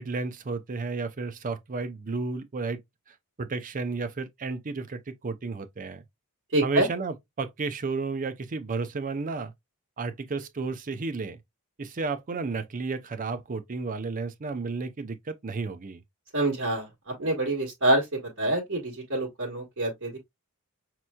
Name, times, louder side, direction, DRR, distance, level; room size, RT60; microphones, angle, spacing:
voice 1, 0.0-2.8 3.1-6.0 6.6-9.5 10.0-11.4 11.8-16.0, right 4 dB, 40° right, 0.5 m, -32 dB
voice 2, 6.5-6.9 16.3-20.2, right 1 dB, 60° right, 1.3 m, -26 dB
5.2 x 3.0 x 2.2 m
head